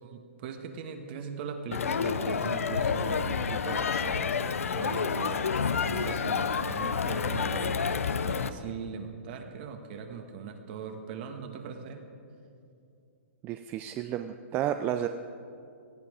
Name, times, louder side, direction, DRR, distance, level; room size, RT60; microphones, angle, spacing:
voice 1, 0.0-7.8 8.2-12.1, right 6 dB, 45° right, 5 dB, 1.4 m, -40 dB
Crowd, 1.7-8.5, left 6 dB, 85° left, 0.7 m, -29 dB
voice 2, 13.4-15.1, right 11 dB, 25° right, 8 dB, 0.4 m, -31 dB
18.0 x 12.5 x 5.0 m, 2.5 s
hypercardioid pair, 140°, 7 cm